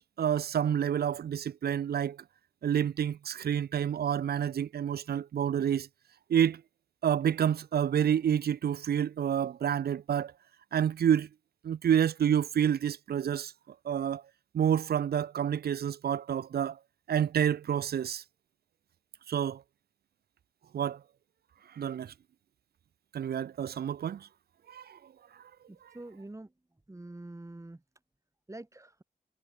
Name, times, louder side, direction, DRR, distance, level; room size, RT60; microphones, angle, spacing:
voice 1, 0.2-2.2 2.6-5.9 6.3-6.6 7.0-10.3 10.7-11.3 11.6-13.5 13.8-14.2 14.5-16.8 17.1-18.2 19.3-19.6 20.7-21.0 21.8-22.1 23.1-24.3 24.7-25.0, right 9 dB, 75° right, 0.5 m, -28 dB
voice 2, 25.7-26.5 26.9-27.8 28.5-29.0, right 2 dB, 20° right, 3.0 m, -45 dB
wide cardioid pair, 85°, 16 cm